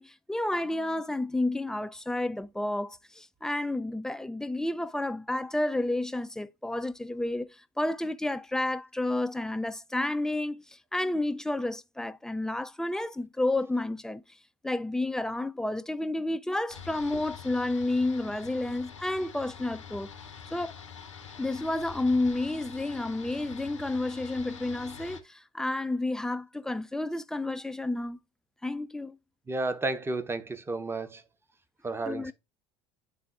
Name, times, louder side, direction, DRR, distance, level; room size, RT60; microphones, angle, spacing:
voice 1, 0.0-14.2 14.6-20.1 20.5-20.8 21.4-28.2 28.6-29.2 32.1-32.3, left 2 dB, 5° left, 0.4 m, -31 dB
sound 1, 16.7-25.2, left 7 dB, 80° left, 0.8 m, -45 dB
voice 2, 29.5-31.2 31.8-32.3, right 2 dB, 15° right, 0.9 m, -32 dB
11.0 x 3.8 x 2.4 m
figure-of-eight pair, 65°, 15 cm